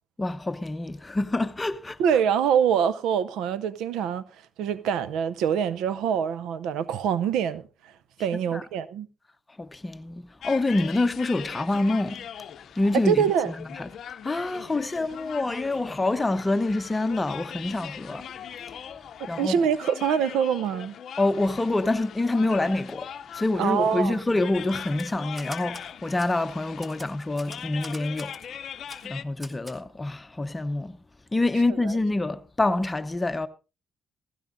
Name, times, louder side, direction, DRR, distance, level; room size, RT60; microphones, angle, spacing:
voice 1, 0.2-2.0 8.5-8.6 9.6-12.3 12.7-18.3 18.7-18.8 19.3-19.6 21.2-28.4 29.0-31.0 31.3-33.5, left 2 dB, 20° left, 0.9 m, -26 dB
voice 2, 2.0-4.2 4.6-7.6 8.2-9.1 13.1-13.5 19.4-21.0 23.6-24.2 31.8-31.9, right 8 dB, 90° right, 0.6 m, -24 dB
sound 1, 10.4-29.2, left 9 dB, 65° left, 0.6 m, -41 dB
Typewriter, 24.9-25.9 26.2-26.3 26.8-28.5 28.9-29.1 29.4-29.8, equal, 20° right, 1.7 m, -44 dB
16.0 x 16.0 x 2.6 m
cardioid pair, 90°, 0 cm